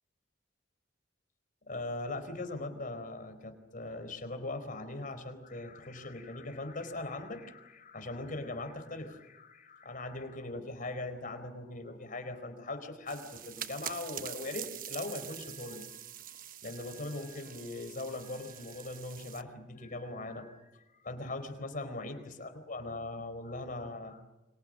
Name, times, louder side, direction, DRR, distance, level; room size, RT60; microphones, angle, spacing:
voice 1, 1.7-24.2, left 2 dB, 45° left, 9 dB, 4.2 m, -40 dB
sound 1, 13.1-19.4, right 11 dB, 45° right, 1.0 m, -45 dB
30.0 x 24.5 x 6.5 m, 1.0 s
head